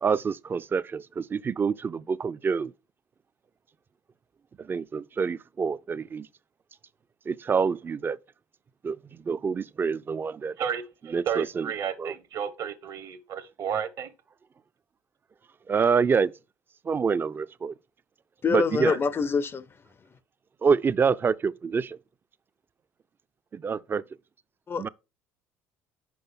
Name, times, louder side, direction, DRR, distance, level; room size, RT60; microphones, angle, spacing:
voice 1, 0.0-2.7 4.7-6.3 7.3-8.2 8.8-10.5 11.1-11.7 12.0-12.1 15.7-16.3 16.9-17.7 18.5-19.0 20.6-22.0 23.5-24.0 24.8-24.9, right 5 dB, 30° right, 0.4 m, -26 dB
voice 2, 10.6-14.1, right 8 dB, 55° right, 0.9 m, -32 dB
voice 3, 18.4-19.7 24.7-24.9, left 5 dB, 30° left, 0.5 m, -25 dB
6.1 x 4.9 x 3.8 m
hypercardioid pair, 70°, 8 cm